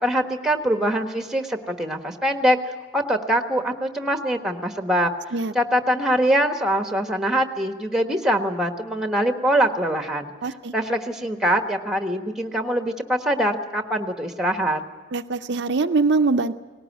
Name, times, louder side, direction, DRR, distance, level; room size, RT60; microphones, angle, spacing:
voice 1, 0.0-5.1 5.5-10.3 10.7-14.8, equal, 5° right, 5 dB, 1.3 m, -23 dB
voice 2, 10.4-10.7 15.1-16.5, right 3 dB, 60° right, 7 dB, 0.6 m, -22 dB
19.0 x 18.0 x 9.3 m, 1.4 s
head